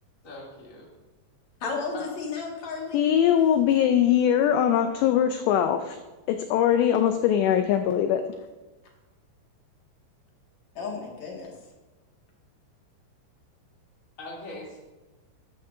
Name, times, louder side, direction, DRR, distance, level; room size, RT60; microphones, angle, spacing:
voice 1, 0.2-0.9 1.9-2.1 14.2-14.8, left 2 dB, 20° left, -4 dB, 2.5 m, -40 dB
voice 2, 1.6-3.0 10.8-11.5, left 4 dB, 50° left, -2 dB, 2.6 m, -33 dB
voice 3, 2.9-6.0 6.3-8.2, left 9 dB, 80° left, 7 dB, 2.5 m, -21 dB
13.5 x 13.0 x 2.7 m, 1.2 s
omnidirectional pair, 5.5 m